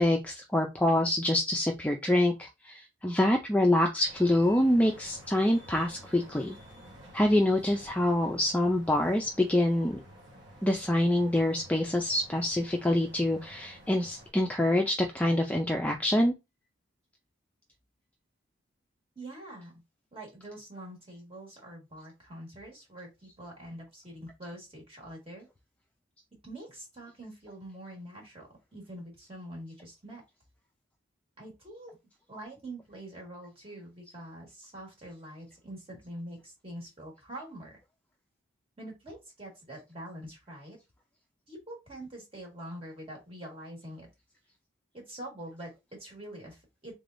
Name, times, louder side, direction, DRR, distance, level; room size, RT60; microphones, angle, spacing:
voice 1, 0.0-6.6 7.1-10.0 10.6-16.3, left 1 dB, 5° left, 1 dB, 0.3 m, -26 dB
sound 1, 4.0-14.3, equal, 65° right, 1.3 m, -51 dB
voice 2, 19.1-19.8 20.1-25.5 26.4-30.2 31.4-31.9 32.3-37.7 38.8-40.8 41.5-44.1 44.9-46.9, right 1 dB, 30° right, -2 dB, 1.6 m, -45 dB
3.6 x 3.3 x 2.5 m, 0.23 s
head